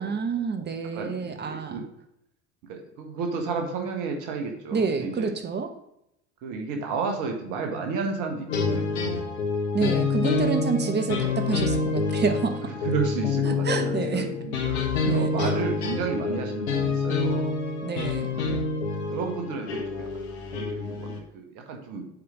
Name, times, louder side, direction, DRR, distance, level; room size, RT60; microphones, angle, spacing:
voice 1, 0.0-1.8 4.7-5.7 9.7-12.7 13.4-14.3 15.0-15.5 17.8-18.3, right 5 dB, 30° right, 8 dB, 1.1 m, -28 dB
voice 2, 0.9-1.8 2.7-5.3 6.4-9.2 12.6-17.5 18.3-18.6 19.1-20.3 20.5-22.1, right 4 dB, 60° right, 3 dB, 1.8 m, -32 dB
sound 1, 8.5-21.2, left 4 dB, 75° left, 1.5 m, -27 dB
7.8 x 5.1 x 5.0 m, 0.80 s
hypercardioid pair, 65°, 34 cm